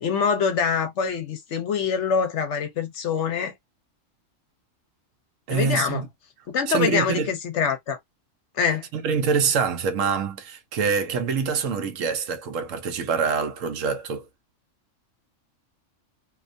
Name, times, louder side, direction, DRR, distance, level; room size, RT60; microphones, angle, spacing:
voice 1, 0.0-3.5 5.5-6.0 6.5-8.0 8.6-8.9, left 6 dB, 65° left, 1.0 m, -24 dB
voice 2, 5.5-6.1 6.7-7.3 8.9-14.2, right 5 dB, 90° right, 1.1 m, -25 dB
2.8 x 2.2 x 2.5 m
omnidirectional pair, 1.3 m